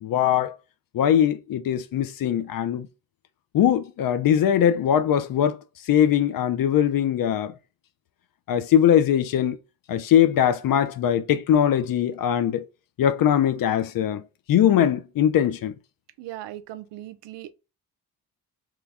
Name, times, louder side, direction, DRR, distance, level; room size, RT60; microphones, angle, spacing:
voice 1, 0.0-0.6 0.9-2.9 3.5-5.6 5.8-7.5 8.5-9.6 9.9-12.7 13.0-14.2 14.5-15.7, left 10 dB, 50° left, 0.5 m, -21 dB
voice 2, 16.2-17.5, right 14 dB, 70° right, 0.5 m, -38 dB
3.1 x 2.3 x 3.3 m
hypercardioid pair, 45°, 45 cm